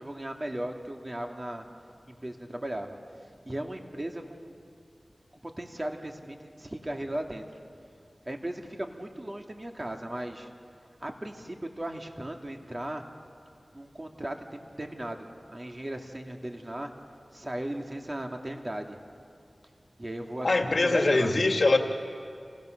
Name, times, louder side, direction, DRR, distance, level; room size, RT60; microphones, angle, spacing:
voice 1, 0.0-1.7 2.1-4.5 5.6-7.4 8.2-10.5 11.0-13.0 13.7-16.9 17.3-19.0 20.0-21.3, right 1 dB, 30° right, 3 dB, 2.6 m, -37 dB
voice 2, 20.4-21.8, left 2 dB, 65° left, 4 dB, 2.1 m, -23 dB
29.0 x 28.5 x 6.7 m, 2.4 s
wide cardioid pair, 55°, 0 cm